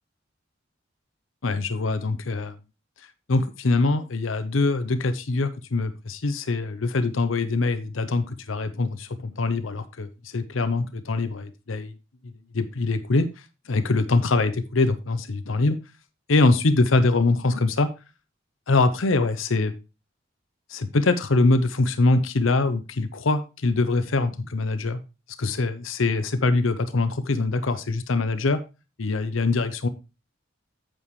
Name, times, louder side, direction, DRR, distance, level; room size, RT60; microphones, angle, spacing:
voice 1, 1.4-2.5 3.3-11.9 12.5-13.3 13.7-15.8 16.3-17.9 18.7-19.7 20.7-25.0 25.4-28.6 29.0-29.9, left 3 dB, 85° left, 12 dB, 0.8 m, -23 dB
8.6 x 7.2 x 3.1 m, 0.28 s
head